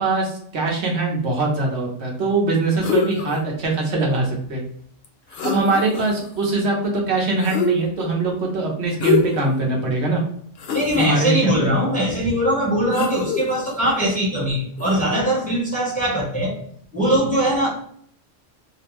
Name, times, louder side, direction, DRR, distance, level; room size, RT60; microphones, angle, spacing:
voice 1, 0.0-4.6 5.4-10.2 10.9-11.8, right 3 dB, 80° right, 0 dB, 1.0 m, -22 dB
sound 1, 2.8-3.4 5.0-5.1 5.3-6.3 7.4-8.1 9.0-9.5 10.0-10.1 10.6-11.1 12.9-13.8 14.8-15.0, left 4 dB, 65° left, 0.7 m, -24 dB
voice 2, 10.7-16.6 16.9-17.7, right 1 dB, 10° left, -5 dB, 0.6 m, -21 dB
2.5 x 2.0 x 2.9 m, 0.65 s
omnidirectional pair, 1.1 m